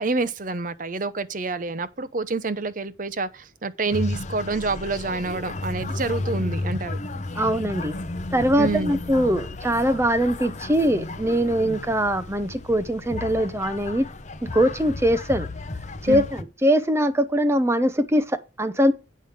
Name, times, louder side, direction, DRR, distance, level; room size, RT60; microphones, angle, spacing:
voice 1, 0.0-7.0 8.6-8.9 16.1-16.2, right 3 dB, 45° right, 0.7 m, -27 dB
sound 1, 3.9-16.4, left 2 dB, 35° left, 0.7 m, -33 dB
voice 2, 7.4-8.0 8.3-14.1 14.4-15.5 16.0-18.9, equal, 15° right, 0.8 m, -22 dB
8.7 x 5.1 x 6.4 m
head